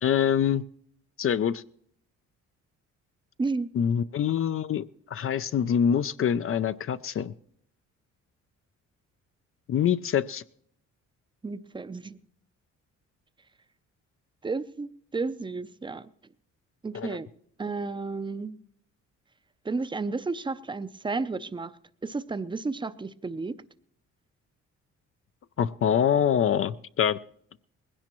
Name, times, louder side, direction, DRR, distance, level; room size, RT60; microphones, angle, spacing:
voice 1, 0.0-0.6 1.2-1.6 3.7-4.8 5.1-7.3 9.7-10.4 16.9-17.2 25.6-27.2, left 8 dB, 45° left, 0.5 m, -25 dB
voice 2, 3.4-3.7 11.4-12.2 14.4-16.1 16.8-17.3 17.6-18.6 19.6-21.7 22.0-23.6, right 3 dB, 15° right, 0.6 m, -32 dB
20.0 x 16.5 x 3.0 m
cardioid pair, 90°, 30 cm